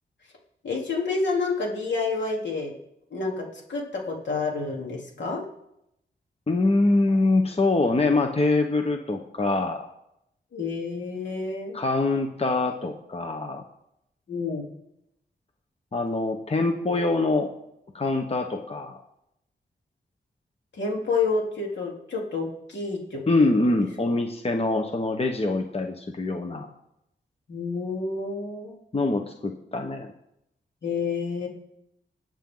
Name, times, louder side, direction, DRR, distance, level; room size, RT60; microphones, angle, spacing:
voice 1, 0.6-2.7 3.1-5.4 10.5-11.7 14.3-14.6 20.7-23.2 27.5-28.8 30.8-31.5, left 4 dB, 75° left, -1 dB, 3.6 m, -29 dB
voice 2, 6.5-9.9 11.7-13.6 15.9-17.5 17.9-19.0 23.3-26.7 28.9-30.1, left 2 dB, 35° left, 4 dB, 1.2 m, -24 dB
26.0 x 9.2 x 4.0 m, 0.82 s
wide cardioid pair, 115°, 19 cm